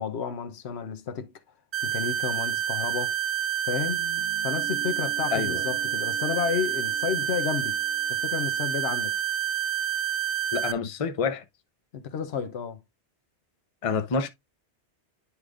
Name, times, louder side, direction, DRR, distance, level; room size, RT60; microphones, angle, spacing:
voice 1, 0.0-1.3 1.8-3.1 3.7-4.1 4.4-7.8 8.1-9.2 11.9-12.8, left 7 dB, 70° left, 1.0 m, -31 dB
sound 1, 1.7-10.7, right 11 dB, 40° right, 0.8 m, -28 dB
Guitar, 3.9-8.9, right 2 dB, 80° right, 1.8 m, -45 dB
voice 2, 5.3-5.6 10.5-11.4 13.8-14.3, left 5 dB, 35° left, 0.7 m, -27 dB
9.9 x 4.9 x 2.5 m
omnidirectional pair, 1.2 m